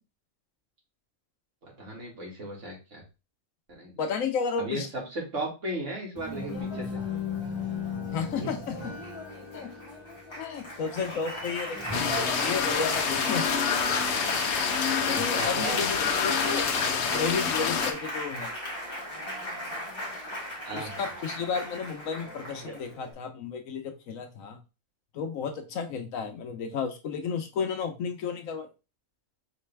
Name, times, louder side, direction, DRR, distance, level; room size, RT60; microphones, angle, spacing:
voice 1, 1.6-3.0 3.7-3.9 4.6-7.0 8.4-8.5 15.1-16.0 20.6-20.9 22.6-22.8, right 1 dB, 65° right, -2 dB, 2.2 m, -36 dB
voice 2, 4.0-4.9 8.1-8.7 9.5-9.7 10.4-13.4 15.1-18.5 20.7-24.6 25.1-28.7, left 5 dB, 80° left, 6 dB, 1.2 m, -33 dB
Applause, 6.2-23.1, left 1 dB, 20° left, 1.6 m, -35 dB
sound 1, 11.9-17.9, left 6 dB, 60° left, 0.9 m, -27 dB
4.9 x 3.2 x 3.4 m, 0.30 s
omnidirectional pair, 1.4 m